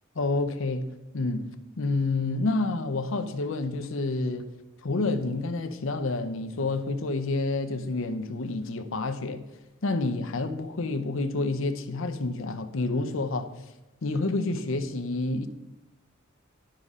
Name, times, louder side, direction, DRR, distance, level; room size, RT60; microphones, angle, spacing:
voice 1, 0.2-0.9 1.1-1.4 1.8-4.5 4.8-9.4 9.8-13.5 14.0-15.5, left 3 dB, 65° left, 0.7 m, -28 dB
11.5 x 5.4 x 3.7 m
head